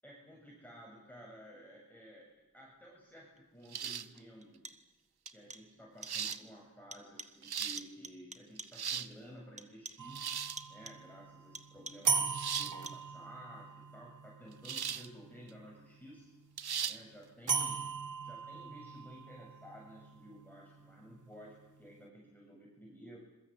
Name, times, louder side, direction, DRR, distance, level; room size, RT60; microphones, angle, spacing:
voice 1, 0.0-2.3 2.5-4.6 5.3-10.3 10.7-16.3 16.8-17.9 18.2-23.2, equal, 5° left, -3 dB, 7.7 m, -53 dB
sound 1, 3.4-3.5 4.4-5.0 5.3-5.8 6.0-6.6 6.9-7.5 7.8-9.1 9.6-10.2 10.6-11.1 11.5-12.2 12.5-13.2, right 2 dB, 20° right, 1.5 m, -50 dB
sound 2, 3.7-4.2 5.3-5.4 6.0-6.4 7.2-7.8 8.6-9.1 10.1-10.6 12.3-12.8 14.7-15.1 15.5-15.6 16.6-17.0, right 8 dB, 80° right, 0.9 m, -38 dB
sound 3, 10.0-16.1 17.5-21.5, right 5 dB, 55° right, 1.3 m, -39 dB
27.0 x 22.5 x 8.3 m, 1.0 s
wide cardioid pair, 80°, 37 cm